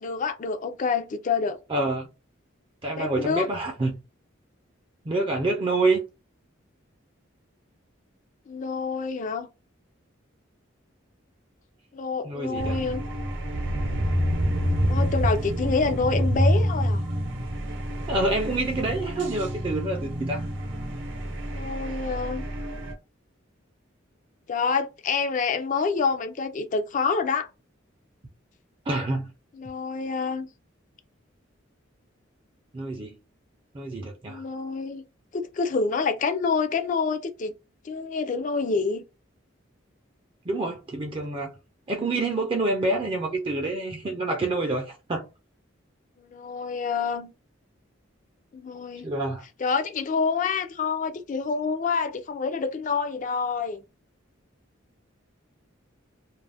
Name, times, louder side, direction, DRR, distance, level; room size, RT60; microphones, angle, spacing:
voice 1, 0.0-1.6 3.0-3.5 8.5-9.5 11.9-13.0 14.9-17.0 21.5-22.4 24.5-27.5 29.6-30.5 34.3-35.0 35.3-37.5 37.8-39.0 46.2-47.3 48.5-49.1 49.6-53.8, left 5 dB, 40° left, 0.4 m, -27 dB
voice 2, 1.7-2.1 2.8-4.0 5.1-6.0 12.2-12.8 18.1-20.5 28.9-29.3 32.7-33.2 33.7-34.4 40.5-41.6 41.9-45.2 49.0-49.4, right 2 dB, 25° right, 0.4 m, -27 dB
sound 1, 12.6-22.9, equal, 65° right, 0.7 m, -27 dB
2.4 x 2.0 x 3.2 m
head